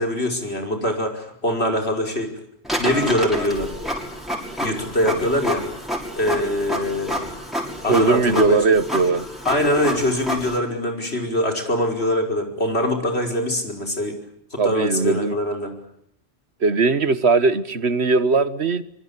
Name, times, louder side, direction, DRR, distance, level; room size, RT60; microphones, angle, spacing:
voice 1, 0.0-2.4 2.8-3.7 4.6-5.6 6.2-7.1 7.8-8.6 9.5-14.2 14.5-15.7, left 1 dB, 70° left, 3 dB, 5.7 m, -23 dB
Printer, 2.6-10.6, equal, ahead, 6.7 m, -29 dB
voice 2, 7.9-9.2 14.6-15.4 16.6-18.8, right 4 dB, 75° right, 14 dB, 1.6 m, -19 dB
26.0 x 24.5 x 8.6 m, 0.74 s
omnidirectional pair, 1.1 m